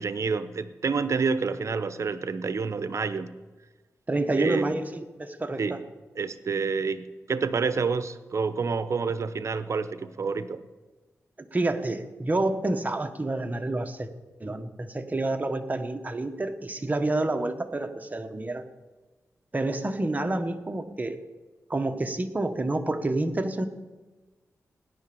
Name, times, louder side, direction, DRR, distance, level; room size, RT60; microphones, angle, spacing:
voice 1, 0.0-3.3 4.4-4.7 5.6-5.8 6.2-10.6, right 5 dB, 60° right, 13 dB, 0.9 m, -28 dB
voice 2, 4.1-5.8 11.4-14.1 14.4-18.7 19.5-21.2 21.7-23.7, right 2 dB, 30° right, 7 dB, 1.4 m, -28 dB
17.0 x 11.0 x 7.0 m, 1.2 s
wide cardioid pair, 80°, 6 cm